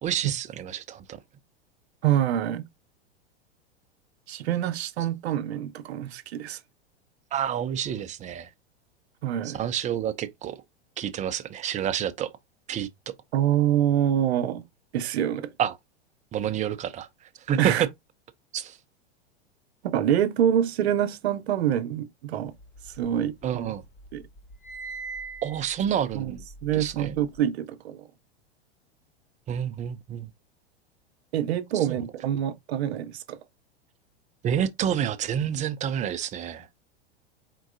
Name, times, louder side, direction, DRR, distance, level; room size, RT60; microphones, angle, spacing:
voice 1, 0.0-1.0 7.3-8.5 9.4-10.6 11.0-12.3 12.7-12.9 15.6-15.7 16.3-17.1 17.5-17.7 18.5-18.7 23.4-23.8 25.4-26.4 26.7-27.2 29.5-30.3 31.9-32.0 34.4-36.7, right 9 dB, 20° right, 0.5 m, -28 dB
voice 2, 2.0-2.6 4.3-6.6 9.2-9.6 13.3-14.6 14.9-15.5 17.6-17.9 19.8-22.5 23.0-23.7 24.1-24.3 26.1-28.1 31.3-33.4, right 10 dB, 70° right, 0.7 m, -26 dB
sound 1, 22.6-23.7 24.0-27.4, right 3 dB, 40° left, 2.5 m, -41 dB
4.5 x 3.7 x 2.5 m
hypercardioid pair, 100°, 33 cm